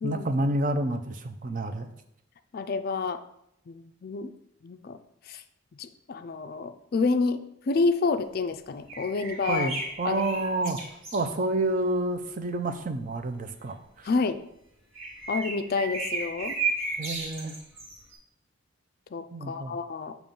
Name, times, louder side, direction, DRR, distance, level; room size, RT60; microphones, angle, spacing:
voice 1, 0.0-1.9 9.5-10.8 11.1-14.1 17.0-17.6 19.3-19.8, right 2 dB, 40° right, 8 dB, 0.5 m, -29 dB
voice 2, 2.5-3.2 3.7-4.3 4.6-5.0 5.3-5.4 5.8-9.7 10.0-10.2 14.0-14.4 15.3-16.6 19.1-20.2, left 4 dB, 45° left, 9 dB, 0.4 m, -29 dB
sound 1, 8.9-11.2 15.0-18.2, right 3 dB, 90° right, 2.1 m, -33 dB
7.1 x 3.0 x 5.2 m, 0.77 s
head